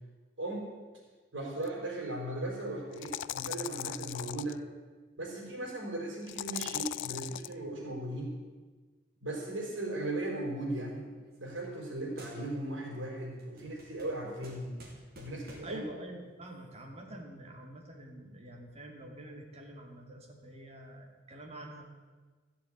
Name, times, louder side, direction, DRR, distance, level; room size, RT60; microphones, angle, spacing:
voice 1, 1.3-4.6 5.2-8.4 9.2-11.1 11.4-14.7 15.2-15.8, right 1 dB, 90° right, -1 dB, 4.3 m, -37 dB
sound 1, 1.6-1.7 2.9-4.6 6.3-7.5, left 12 dB, 75° left, 0.3 m, -38 dB
sound 2, 10.5-11.9 12.2-12.8 13.2-15.9, right 1 dB, 55° right, 3.3 m, -54 dB
voice 2, 15.6-21.8, right 1 dB, 35° right, 1 dB, 2.4 m, -47 dB
14.0 x 7.1 x 8.6 m, 1.4 s
head